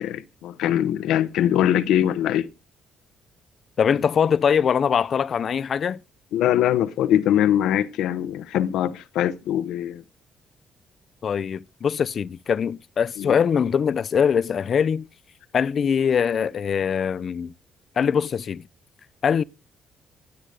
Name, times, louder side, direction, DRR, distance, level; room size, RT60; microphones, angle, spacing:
voice 1, 0.0-2.5 6.3-10.0 13.2-13.4, left 11 dB, 90° left, 1.0 m, -22 dB
voice 2, 3.8-6.0 11.2-15.1 15.5-17.5 18.0-18.7 19.2-19.4, left 7 dB, 55° left, 0.6 m, -22 dB
18.0 x 8.3 x 5.2 m
cardioid pair, 90°, 0 cm